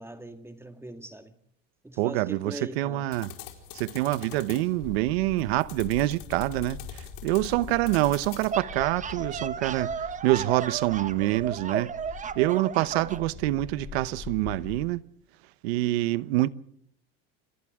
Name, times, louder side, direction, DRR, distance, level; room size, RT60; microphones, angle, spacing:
voice 1, 0.0-1.4 1.8-3.1 12.8-13.0, right 1 dB, 10° right, 1.9 m, -41 dB
voice 2, 2.0-3.3 3.7-9.9 10.2-11.9 12.4-15.0 15.6-16.5, right 17 dB, 90° right, 1.0 m, -26 dB
sound 1, 3.1-8.5, left 12 dB, 85° left, 4.5 m, -46 dB
sound 2, 4.8-14.8, left 7 dB, 25° left, 5.7 m, -44 dB
sound 3, 8.5-13.3, right 6 dB, 25° right, 1.2 m, -34 dB
28.5 x 27.5 x 3.6 m
supercardioid pair, 125°, 31 cm